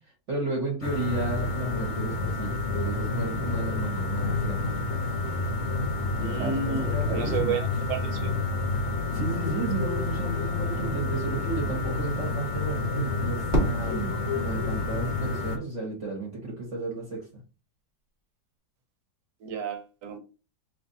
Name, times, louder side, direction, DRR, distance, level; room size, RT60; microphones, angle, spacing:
voice 1, 0.3-4.7 6.2-7.6 9.1-17.2, right 3 dB, 50° right, 1.2 m, -33 dB
sound 1, 0.8-15.6, left 3 dB, 70° left, 1.2 m, -29 dB
voice 2, 6.2-8.3 19.4-20.2, right 5 dB, 75° right, 1.3 m, -32 dB
Fireworks, 13.5-15.7, equal, 25° right, 1.3 m, -31 dB
2.9 x 2.5 x 3.9 m
omnidirectional pair, 1.9 m